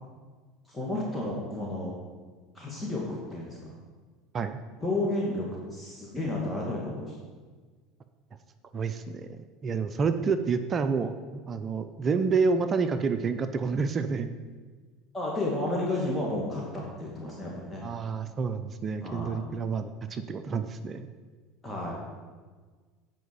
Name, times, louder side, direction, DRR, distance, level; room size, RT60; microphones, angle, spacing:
voice 1, 0.7-1.9 2.5-3.6 4.8-5.5 5.7-7.2 10.1-10.3 15.1-17.8 19.0-19.4 21.6-22.0, left 2 dB, 10° left, -4 dB, 2.3 m, -32 dB
voice 2, 8.7-9.3 9.6-11.2 11.5-14.3 17.8-21.1, right 5 dB, 35° right, 9 dB, 0.6 m, -28 dB
9.3 x 4.9 x 7.0 m, 1.4 s
hypercardioid pair, 80°, 0 cm